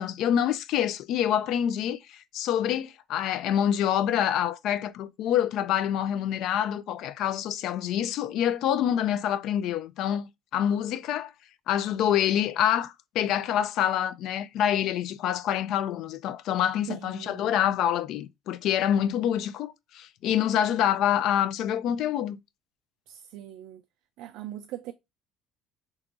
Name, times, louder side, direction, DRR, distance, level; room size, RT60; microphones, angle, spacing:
voice 1, 0.0-11.3 11.7-22.4, left 10 dB, 60° left, 0.3 m, -26 dB
voice 2, 16.9-17.5 23.1-23.8 24.2-24.9, right 13 dB, 75° right, 0.3 m, -40 dB
3.6 x 2.9 x 2.5 m
cardioid pair, 135°, 0 cm